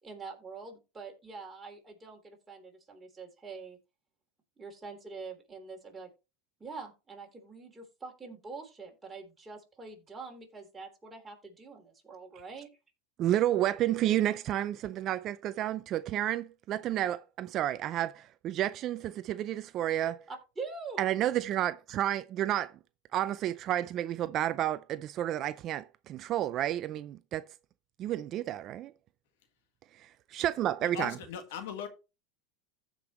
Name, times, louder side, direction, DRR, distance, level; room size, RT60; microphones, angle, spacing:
voice 1, 0.0-3.8 4.6-6.1 6.6-12.7 20.3-21.1, right 4 dB, 15° right, 3.4 m, -45 dB
voice 2, 13.2-20.3 21.0-22.7 23.1-27.5 28.0-28.9 29.9-31.2, right 12 dB, 45° right, 0.4 m, -31 dB
voice 3, 30.8-31.9, left 8 dB, 75° left, 1.8 m, -39 dB
15.0 x 5.2 x 3.1 m
supercardioid pair, 115°, 0 cm